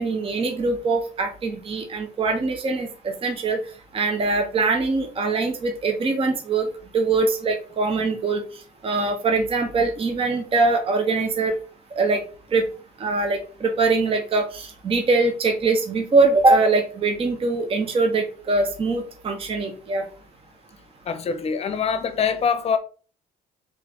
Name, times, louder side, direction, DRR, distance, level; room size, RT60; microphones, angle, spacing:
voice 1, 0.0-3.6 3.9-6.7 6.9-8.4 8.8-11.5 12.0-12.2 12.5-12.6 13.0-20.0, right 3 dB, 35° right, 0.8 m, -22 dB
voice 2, 21.1-22.8, left 6 dB, 35° left, 0.7 m, -24 dB
3.5 x 3.2 x 3.8 m
cardioid pair, 110°, 17 cm